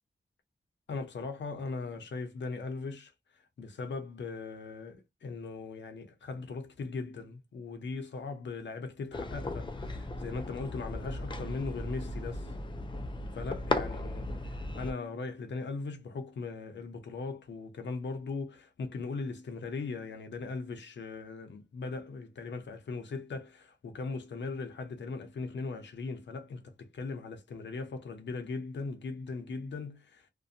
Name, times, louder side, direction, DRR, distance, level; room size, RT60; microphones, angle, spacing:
voice 1, 0.9-3.1 3.6-12.6 13.3-30.3, left 4 dB, 80° left, 0.7 m, -39 dB
sound 1, 9.1-14.9, left 2 dB, 25° left, 0.4 m, -36 dB
2.5 x 2.2 x 2.7 m
wide cardioid pair, 70°, 18 cm